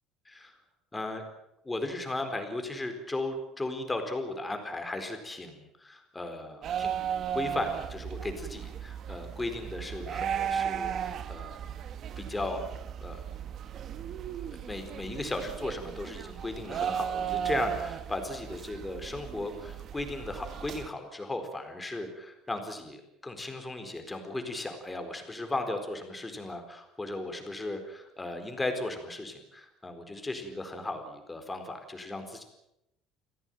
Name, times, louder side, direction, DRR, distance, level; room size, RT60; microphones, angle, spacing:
voice 1, 0.3-0.6 0.9-1.3 1.6-7.0 7.3-11.5 12.2-12.7 13.0-13.2 14.7-32.4, left 2 dB, 10° left, 6 dB, 4.3 m, -36 dB
sound 1, 6.6-20.9, right 8 dB, 40° right, 1.5 m, -36 dB
26.5 x 17.0 x 9.2 m, 0.87 s
cardioid pair, 145°, 0 cm